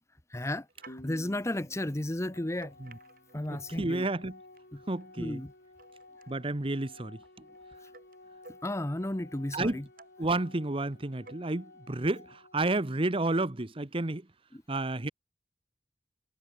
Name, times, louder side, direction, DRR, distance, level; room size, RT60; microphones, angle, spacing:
voice 1, 0.3-2.7 3.3-4.0 4.7-4.8 5.2-5.5 8.6-9.8 14.5-14.6, left 1 dB, 15° left, 0.9 m, -33 dB
sound 1, 0.6-4.3 4.5-9.0 9.4-10.4 10.8-11.5, right 3 dB, 55° right, 5.2 m, -57 dB
sound 2, 0.9-4.3, equal, 40° left, 4.4 m, -54 dB
Organ, 2.2-13.2, left 2 dB, 70° left, 7.5 m, -55 dB
voice 2, 3.5-4.4 4.9-5.4 6.3-7.2 9.5-9.8 10.2-14.2 14.7-15.1, right 2 dB, 30° right, 1.0 m, -31 dB
head